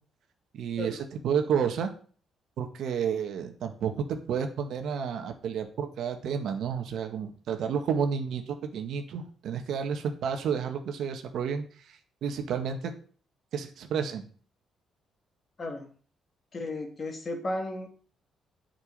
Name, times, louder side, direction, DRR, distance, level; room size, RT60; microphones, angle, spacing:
voice 1, 0.5-1.9 2.6-12.0 12.2-12.9 13.5-14.3, right 7 dB, 75° right, 6 dB, 1.8 m, -31 dB
voice 2, 15.6-15.9 16.5-17.9, left 1 dB, 35° left, 3 dB, 2.8 m, -34 dB
8.2 x 6.1 x 7.6 m, 0.43 s
cardioid pair, 90°, 0 cm